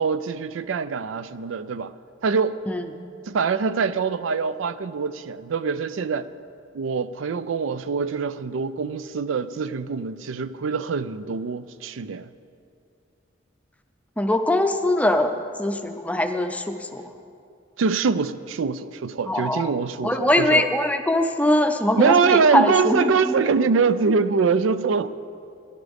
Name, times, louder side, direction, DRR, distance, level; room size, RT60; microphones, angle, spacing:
voice 1, 0.0-1.9 2.2-2.6 3.3-6.3 6.7-12.3 17.8-20.7 22.0-25.1, right 5 dB, 85° right, 0.4 m, -24 dB
voice 2, 14.2-17.0 19.3-19.8 20.0-23.4, left 1 dB, 5° left, 0.5 m, -22 dB
17.5 x 11.5 x 3.5 m
head